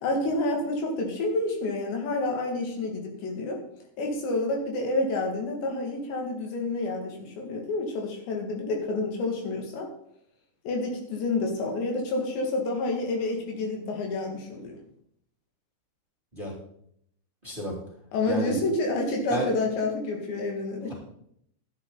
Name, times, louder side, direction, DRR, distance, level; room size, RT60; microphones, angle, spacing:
voice 1, 0.0-3.6 4.0-9.9 10.6-14.8 18.1-20.9, left 2 dB, 80° left, 1 dB, 4.4 m, -29 dB
voice 2, 17.4-17.8 18.3-18.6 19.3-19.5, equal, 15° right, -4 dB, 2.3 m, -31 dB
14.0 x 9.8 x 4.0 m, 0.70 s
omnidirectional pair, 5.0 m